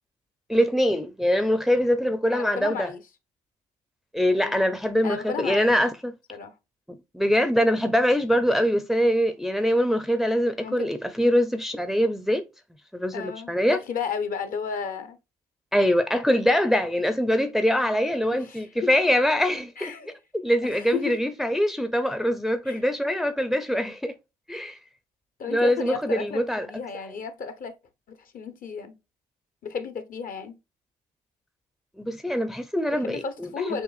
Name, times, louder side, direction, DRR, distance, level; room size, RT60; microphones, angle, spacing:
voice 1, 0.5-2.9 4.1-6.1 6.9-12.4 12.9-13.8 15.7-19.9 20.3-24.1 24.5-24.8 25.5-26.7 32.0-33.5, equal, ahead, 0.5 m, -23 dB
voice 2, 2.3-3.0 4.4-4.8 5.0-5.8 6.3-6.5 10.6-10.9 13.1-15.2 18.3-18.9 19.8-20.1 20.6-21.2 22.6-22.8 25.4-27.7 28.1-29.0 29.6-30.6 32.9-33.8, left 6 dB, 50° left, 0.8 m, -33 dB
6.6 x 2.6 x 2.4 m
supercardioid pair, 70°, 18 cm